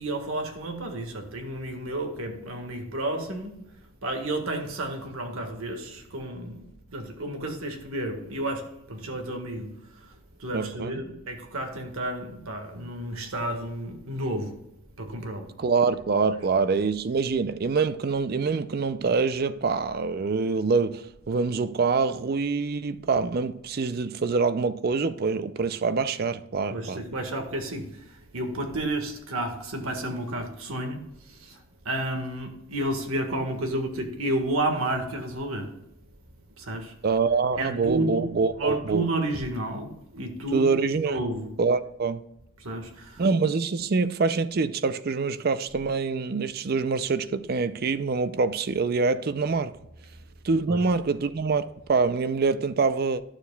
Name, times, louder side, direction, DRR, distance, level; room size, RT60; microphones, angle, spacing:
voice 1, 0.0-3.8 4.0-14.6 15.0-15.5 26.7-35.7 36.6-36.9 37.6-38.3 38.6-41.5 42.6-43.2 50.7-50.8, right 1 dB, 80° right, 1.6 m, -31 dB
voice 2, 10.5-10.9 15.6-27.0 37.0-39.0 40.5-41.2 41.6-42.2 43.2-49.7 50.4-53.2, right 4 dB, 45° right, 0.4 m, -25 dB
11.5 x 6.9 x 2.3 m
head